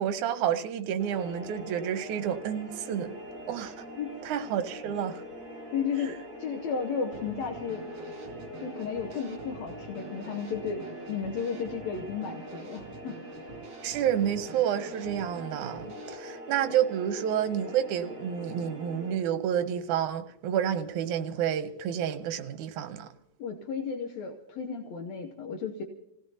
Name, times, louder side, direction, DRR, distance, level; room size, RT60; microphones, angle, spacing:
voice 1, 0.0-3.1 3.5-3.7 4.2-5.2 6.0-6.1 13.8-23.1, right 9 dB, 80° right, 2.2 m, -29 dB
sound 1, 1.0-19.1, equal, 25° right, 5.4 m, -43 dB
voice 2, 5.7-7.8 8.6-13.2 23.4-25.8, left 6 dB, 70° left, 1.9 m, -34 dB
Drum kit / Snare drum, 7.1-16.2, right 5 dB, 60° right, 3.0 m, -48 dB
28.0 x 16.5 x 2.8 m
omnidirectional pair, 3.6 m